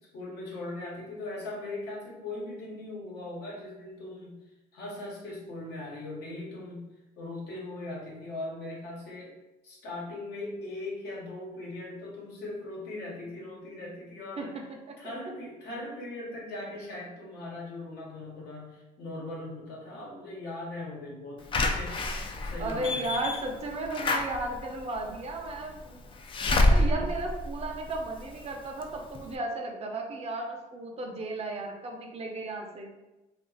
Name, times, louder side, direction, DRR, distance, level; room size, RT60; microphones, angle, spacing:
voice 1, 0.1-4.4 4.7-6.9 7.2-9.3 9.6-14.6 15.0-23.1 26.8-27.1, left 2 dB, 75° left, -3 dB, 1.1 m, -39 dB
Slam / Alarm, 21.5-28.3 28.8-28.9 29.1-29.2, left 2 dB, 30° left, 0.4 m, -28 dB
voice 2, 22.6-26.1 26.5-32.9, right 2 dB, 40° right, 1 dB, 0.6 m, -34 dB
2.5 x 2.4 x 3.9 m, 1.0 s
cardioid pair, 110°, 17 cm